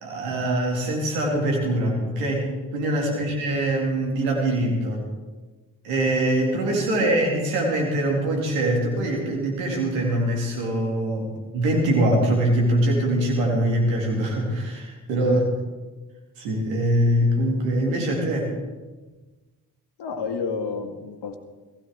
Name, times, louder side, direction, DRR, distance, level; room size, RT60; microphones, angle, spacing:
voice 1, 0.0-5.0 5.8-15.4 16.4-18.5, right 1 dB, 85° right, 0 dB, 2.3 m, -23 dB
voice 2, 20.0-21.4, left 5 dB, 65° left, 6 dB, 1.8 m, -31 dB
17.5 x 16.0 x 3.6 m, 1.2 s
hypercardioid pair, 40°, 44 cm